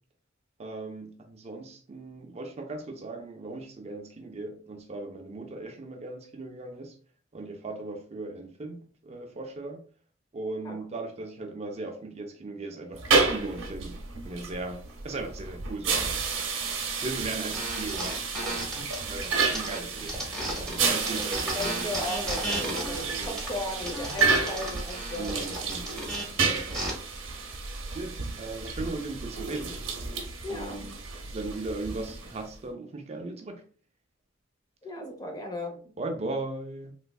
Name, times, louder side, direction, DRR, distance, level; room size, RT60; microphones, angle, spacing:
voice 1, 0.6-7.0 7.3-9.8 10.3-16.2 17.0-18.6 19.0-22.0 22.5-23.4 25.1-26.1 26.4-27.0 27.9-29.7 30.5-31.0 31.3-33.6 36.0-36.9, right 2 dB, 35° right, 0.4 m, -38 dB
sound 1, 12.9-32.5, right 4 dB, 75° right, 0.8 m, -31 dB
sound 2, 17.5-20.8 21.1-26.9, right 1 dB, 5° left, 1.1 m, -35 dB
voice 2, 20.8-25.7 26.0-26.1 30.4-30.8 34.8-35.8, left 1 dB, 20° left, 0.7 m, -36 dB
3.3 x 3.1 x 2.3 m
head